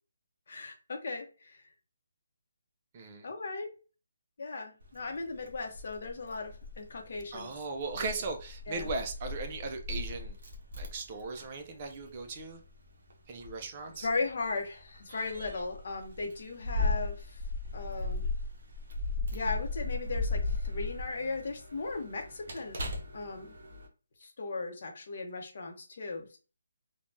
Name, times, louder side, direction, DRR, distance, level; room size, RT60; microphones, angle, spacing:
voice 1, 0.5-1.6 3.2-3.7 4.4-7.5 8.0-8.1 8.7-8.9 14.0-17.4 17.7-18.3 19.3-22.8 23.1-23.5 24.2-26.4, left 3 dB, 50° left, 3 dB, 0.7 m, -37 dB
voice 2, 2.9-3.3 7.3-10.4 10.8-12.6 13.3-14.1, right 3 dB, 25° right, 5 dB, 0.4 m, -38 dB
Keys jangling, 4.8-23.9, left 2 dB, 50° right, 0.8 m, -37 dB
3.2 x 2.1 x 2.5 m, 0.35 s
hypercardioid pair, 170°, 0 cm